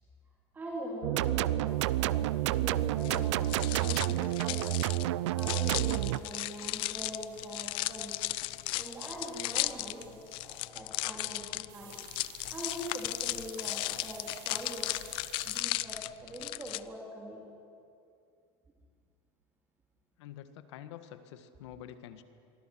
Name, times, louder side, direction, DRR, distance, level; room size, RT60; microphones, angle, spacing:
voice 1, 0.5-4.8 5.3-8.1 8.8-11.9 12.5-14.9 15.4-17.4, right 1 dB, 15° right, -2 dB, 3.4 m, -42 dB
sound 1, 1.0-6.2, right 15 dB, 85° right, 0.7 m, -29 dB
sound 2, 1.7-10.7 11.7-15.6, right 13 dB, 50° right, 2.3 m, -57 dB
sound 3, 3.0-16.8, left 19 dB, 35° left, 0.5 m, -36 dB
voice 2, 20.2-22.2, left 10 dB, 75° left, 9 dB, 1.7 m, -47 dB
29.0 x 23.5 x 6.2 m, 2.4 s
supercardioid pair, 175°, 15 cm